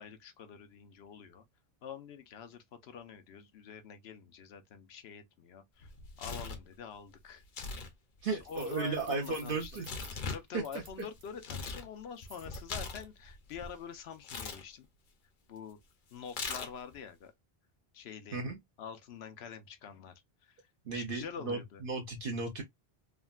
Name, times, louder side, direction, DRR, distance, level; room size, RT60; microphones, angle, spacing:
voice 1, 0.0-1.4 1.8-5.9 6.2-7.4 8.3-9.9 10.3-14.9 15.5-15.8 16.1-17.3 17.9-18.4 18.8-20.2 20.5-20.6 20.9-21.8, left 7 dB, 85° left, 0.9 m, -46 dB
Tearing, 5.8-6.7 7.4-7.9 8.2-11.9 12.2-13.7 14.2-14.6 16.3-16.9, left 4 dB, 55° left, 0.7 m, -41 dB
voice 2, 8.2-9.9 10.5-10.6 18.3-18.6 20.9-22.6, right 3 dB, 60° right, 0.8 m, -35 dB
sound 1, 8.4-11.3 12.2-12.6, right 3 dB, 30° right, 0.5 m, -54 dB
3.5 x 2.1 x 2.2 m
omnidirectional pair, 1.0 m